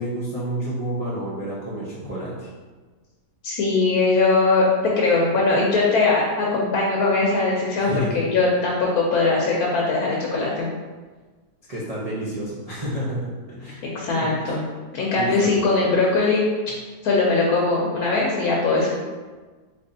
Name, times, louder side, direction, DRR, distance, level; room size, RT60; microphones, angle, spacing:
voice 1, 0.0-2.5 7.8-8.2 11.7-13.8 14.2-14.6 15.1-15.5, equal, 60° right, -9 dB, 0.3 m, -29 dB
voice 2, 3.4-10.7 13.8-14.6 14.9-16.5 17.0-18.9, left 3 dB, 75° left, -3 dB, 1.0 m, -20 dB
4.0 x 3.3 x 2.6 m, 1.4 s
omnidirectional pair, 1.7 m